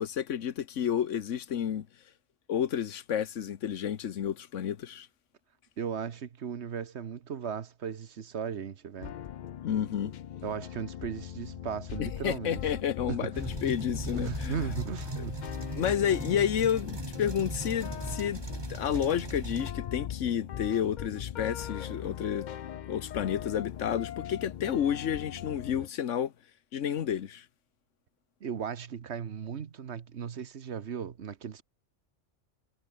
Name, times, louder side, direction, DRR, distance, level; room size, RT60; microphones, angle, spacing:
voice 1, 0.0-1.9 2.5-5.1 9.6-10.1 12.0-14.7 15.2-15.3 15.7-18.4 18.7-22.5 22.9-26.3 26.7-27.5, left 9 dB, 85° left, 1.3 m, -30 dB
voice 2, 5.8-9.2 10.4-12.6 13.1-13.4 14.1-15.4 28.4-31.6, right 7 dB, 65° right, 1.3 m, -37 dB
sound 1, 9.0-25.9, left 10 dB, 55° left, 0.5 m, -40 dB
sound 2, 13.3-19.7, right 2 dB, 20° right, 2.0 m, -38 dB
omnidirectional pair, 1.2 m